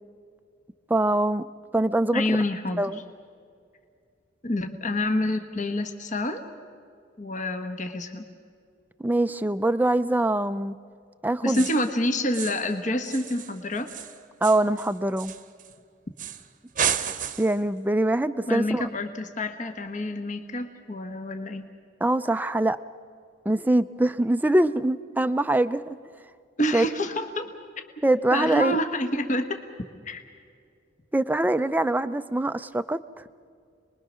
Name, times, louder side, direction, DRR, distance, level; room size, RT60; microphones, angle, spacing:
voice 1, 0.9-1.4 1.7-2.4 2.8-3.0 9.0-10.8 11.2-11.6 14.4-15.3 17.4-18.9 22.0-22.8 23.5-26.0 26.7-26.9 28.0-28.8 31.1-33.0, right 1 dB, 10° right, 11 dB, 0.5 m, -23 dB
voice 2, 2.1-2.8 4.4-6.4 7.2-8.3 11.4-13.9 18.5-21.7 26.6-27.5 28.3-29.6 30.0-30.2, left 1 dB, 40° left, 6 dB, 1.3 m, -27 dB
sound 1, 11.5-11.9 12.3-12.7 13.0-15.7 16.2-16.5 16.8-17.6, right 8 dB, 45° right, 0.9 m, -32 dB
28.0 x 21.0 x 6.3 m, 2.3 s
head